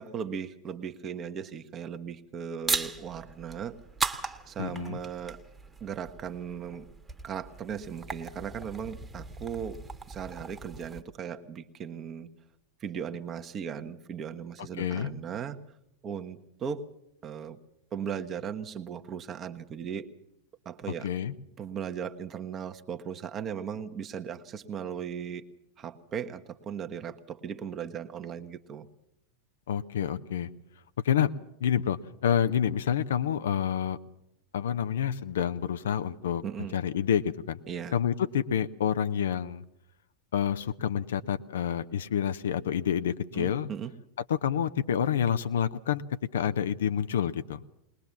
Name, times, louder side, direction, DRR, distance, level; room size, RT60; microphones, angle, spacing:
voice 1, 0.0-3.7 4.5-5.4 5.8-6.8 7.2-9.8 10.1-12.3 12.8-15.6 16.0-16.9 17.2-17.6 17.9-20.1 20.6-21.1 21.6-25.4 25.8-28.9 36.4-36.8 37.7-37.9 43.3-43.9, right 7 dB, 30° right, 8 dB, 1.3 m, -37 dB
sound 1, 2.6-11.0, right 4 dB, 10° right, 1.5 m, -38 dB
voice 2, 4.6-5.0 14.8-15.1 21.0-21.3 29.7-30.5 31.0-31.3 31.6-34.0 34.5-36.4 36.7-37.6 37.9-39.6 40.3-43.7 44.3-46.0 46.3-47.6, left 9 dB, 60° left, 11 dB, 0.8 m, -28 dB
21.0 x 20.5 x 7.3 m, 0.80 s
figure-of-eight pair, 90°, 0 cm